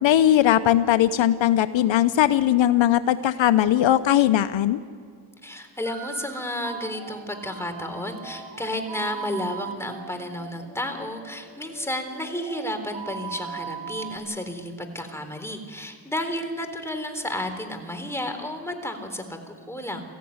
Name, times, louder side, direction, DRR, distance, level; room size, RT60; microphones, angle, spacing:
voice 1, 0.0-4.8, left 12 dB, 70° left, 12 dB, 0.8 m, -19 dB
voice 2, 5.4-20.1, left 1 dB, 5° left, 5 dB, 3.9 m, -32 dB
sound 1, 5.8-14.2, right 7 dB, 70° right, 3.2 m, -39 dB
21.5 x 15.5 x 9.6 m, 2.1 s
cardioid pair, 60°, 47 cm